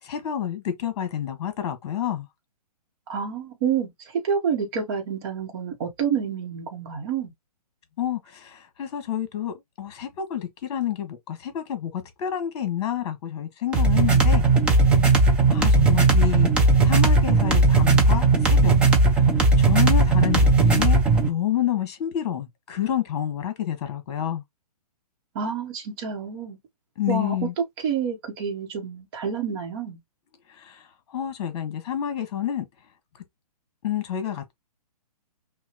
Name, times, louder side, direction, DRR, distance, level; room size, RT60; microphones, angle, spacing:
voice 1, 0.0-2.3 8.0-14.5 15.1-15.2 15.5-16.5 16.8-18.7 19.6-24.4 27.0-27.5 30.5-32.7 33.8-34.5, left 10 dB, 40° left, 1.6 m, -29 dB
voice 2, 3.1-7.3 25.3-26.6 27.1-27.5 27.8-30.0, right 7 dB, 35° right, 1.1 m, -28 dB
sound 1, 13.7-21.3, right 3 dB, 5° right, 0.4 m, -17 dB
5.5 x 2.3 x 3.0 m
hypercardioid pair, 150°, 21 cm